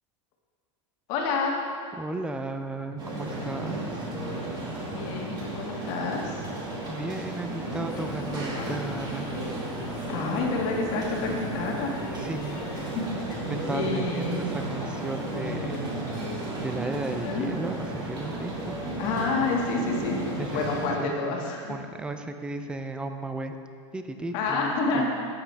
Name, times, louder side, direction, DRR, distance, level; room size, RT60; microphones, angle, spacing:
voice 1, 1.1-1.5 4.9-6.5 10.1-11.9 12.9-13.0 13.3-13.4 13.7-14.4 17.2-17.5 19.0-20.2 20.5-21.7 24.3-25.0, left 4 dB, 50° left, -1 dB, 1.9 m, -28 dB
voice 2, 2.0-4.1 6.9-9.3 12.1-12.7 13.5-15.9 16.3-18.8 20.4-23.6 23.9-25.1, right 2 dB, 5° right, 7 dB, 0.4 m, -35 dB
sound 1, 3.0-20.9, right 2 dB, 25° right, 2.3 m, -33 dB
sound 2, 7.9-13.1, left 3 dB, 25° left, 1.1 m, -43 dB
12.5 x 8.5 x 3.4 m, 2.2 s
supercardioid pair, 145°, 16 cm